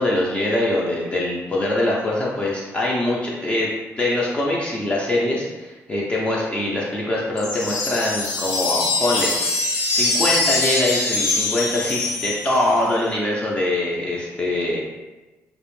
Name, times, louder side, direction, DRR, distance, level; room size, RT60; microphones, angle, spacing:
voice 1, 0.0-3.7 4.0-9.3 9.9-14.8, left 1 dB, 20° left, -4 dB, 0.4 m, -23 dB
sound 1, 7.4-12.8, left 3 dB, 85° left, 0.5 m, -23 dB
2.4 x 2.0 x 3.0 m, 1.2 s
cardioid pair, 120°, 5 cm